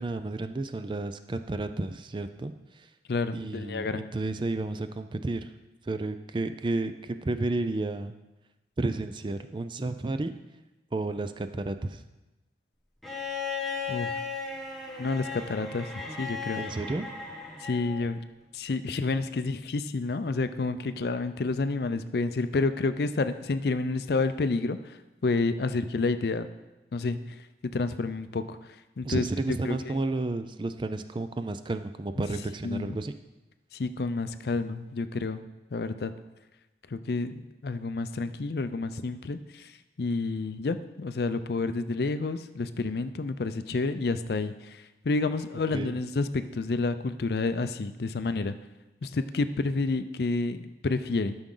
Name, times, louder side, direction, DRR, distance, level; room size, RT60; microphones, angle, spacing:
voice 1, 0.0-2.9 3.3-5.5 5.9-8.1 8.8-10.3 10.9-12.0 16.6-17.1 29.0-33.1 45.7-46.0, right 2 dB, 25° right, 9 dB, 0.4 m, -32 dB
voice 2, 3.1-4.0 13.9-14.2 15.0-15.9 16.2-16.6 17.6-18.2 18.5-25.0 25.2-26.5 26.9-27.4 27.7-28.6 29.0-30.0 32.6-33.0 33.7-35.4 35.7-36.1 36.9-39.7 40.0-48.5 49.0-51.4, left 3 dB, 60° left, 11 dB, 0.5 m, -29 dB
Bowed string instrument, 13.0-18.1 19.5-19.6, left 5 dB, ahead, 1.3 m, -36 dB
12.5 x 6.1 x 3.8 m, 1.0 s
head